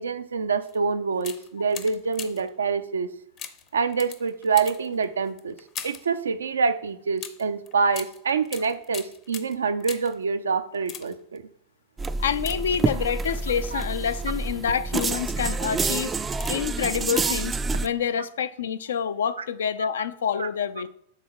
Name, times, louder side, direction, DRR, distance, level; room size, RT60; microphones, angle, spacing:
voice 1, 0.0-3.1 3.7-5.5 5.8-11.4 13.7-13.8 20.4-20.5, right 5 dB, 90° right, 0.5 m, -26 dB
sound 1, 0.6-0.8 1.2-2.6 3.4-6.2 7.2-10.2 10.7-11.4 12.3-13.2 13.8-14.1 14.6-15.4 16.3-16.8 17.0-17.1, left 8 dB, 35° left, 0.6 m, -41 dB
sound 2, 12.0-17.9, right 3 dB, 20° right, 0.3 m, -28 dB
voice 2, 12.2-16.1 16.5-20.9, left 7 dB, 80° left, 0.4 m, -27 dB
6.6 x 3.7 x 4.6 m
hypercardioid pair, 105°, 0 cm